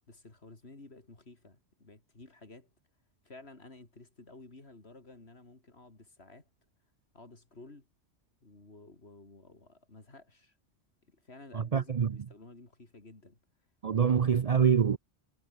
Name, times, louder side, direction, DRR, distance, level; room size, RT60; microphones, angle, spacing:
voice 1, 0.0-2.7 3.2-6.5 7.1-7.9 8.4-10.6 11.0-13.4 14.1-14.3, left 2 dB, 55° left, 3.8 m, -53 dB
voice 2, 11.5-12.2 13.8-15.0, right 7 dB, 45° right, 0.5 m, -25 dB
omnidirectional pair, 1.3 m